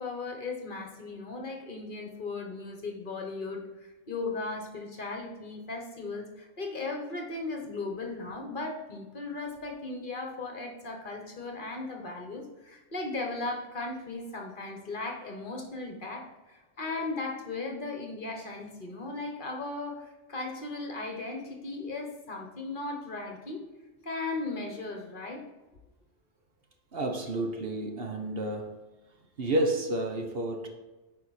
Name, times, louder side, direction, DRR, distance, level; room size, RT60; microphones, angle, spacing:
voice 1, 0.0-23.6 24.0-25.5, left 3 dB, 45° left, 2 dB, 1.3 m, -37 dB
voice 2, 26.9-28.8 29.4-30.7, right 1 dB, 55° right, 3 dB, 1.2 m, -30 dB
9.4 x 4.9 x 4.2 m, 1.1 s
omnidirectional pair, 1.2 m